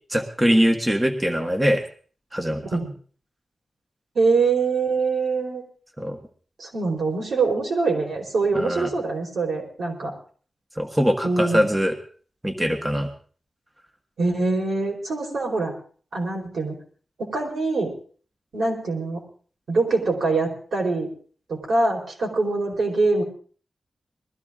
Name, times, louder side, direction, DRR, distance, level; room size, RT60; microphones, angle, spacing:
voice 1, 0.1-1.8 2.3-2.6 6.0-6.2 8.5-8.9 10.8-12.0 12.4-13.1, equal, 15° right, 5 dB, 1.5 m, -22 dB
voice 2, 4.1-5.6 6.6-10.1 11.2-11.7 14.2-15.7 16.1-16.7 17.2-17.9 18.5-19.2 19.7-21.1 21.5-23.2, right 3 dB, 90° right, 0 dB, 4.7 m, -24 dB
21.0 x 14.0 x 3.7 m, 0.43 s
wide cardioid pair, 135°, 0 cm